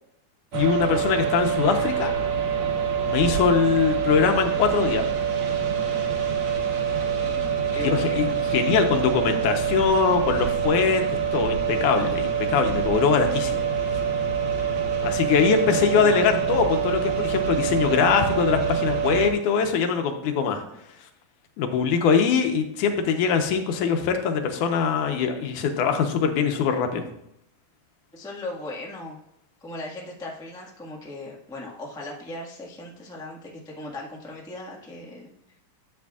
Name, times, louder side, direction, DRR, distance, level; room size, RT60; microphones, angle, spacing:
voice 1, 0.5-2.1 3.1-5.1 7.8-11.0 11.3-13.7 15.0-20.6 21.6-27.0, left 6 dB, 90° left, 5 dB, 2.4 m, -22 dB
sound 1, 0.5-19.3, right 7 dB, 70° right, 2.3 m, -25 dB
voice 2, 7.2-8.4 15.4-16.3 28.1-29.2 29.6-35.3, left 2 dB, 5° left, -3 dB, 0.4 m, -38 dB
12.0 x 7.9 x 2.4 m, 0.78 s
omnidirectional pair, 3.4 m